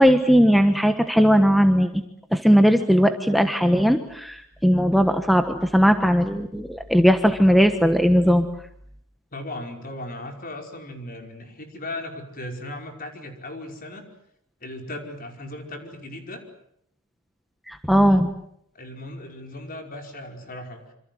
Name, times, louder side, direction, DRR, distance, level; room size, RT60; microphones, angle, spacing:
voice 1, 0.0-2.0 2.3-8.5 17.7-18.3, equal, ahead, 7 dB, 1.3 m, -18 dB
voice 2, 9.3-14.0 14.6-16.4 18.7-20.9, left 1 dB, 40° left, 4 dB, 5.2 m, -37 dB
27.0 x 26.5 x 7.7 m, 0.73 s
head